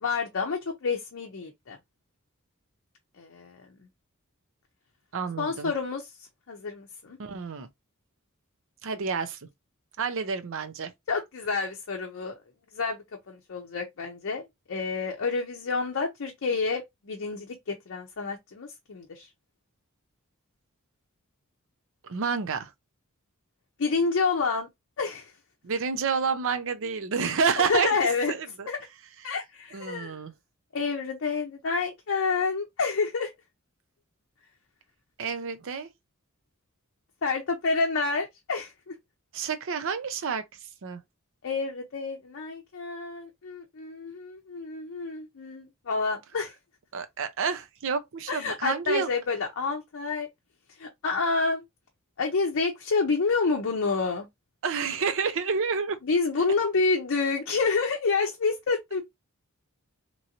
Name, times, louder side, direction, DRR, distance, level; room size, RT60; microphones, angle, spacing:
voice 1, 0.0-1.8 3.2-3.6 5.4-6.1 6.5-7.2 11.1-12.3 12.7-13.0 13.3-19.3 23.8-24.7 25.0-25.3 27.7-28.3 28.7-28.8 29.2-30.2 30.7-33.3 37.2-38.9 41.4-46.5 48.3-50.3 50.8-51.6 52.2-54.3 56.0-59.0, left 4 dB, 60° left, 0.6 m, -28 dB
voice 2, 5.1-5.7 7.2-7.7 8.8-9.4 10.0-10.9 22.0-22.7 25.6-28.0 28.3-28.7 29.7-30.3 35.2-35.9 39.3-40.4 40.8-41.0 46.9-49.1 54.6-56.0, right 5 dB, 65° right, 0.6 m, -29 dB
3.0 x 2.6 x 2.8 m
head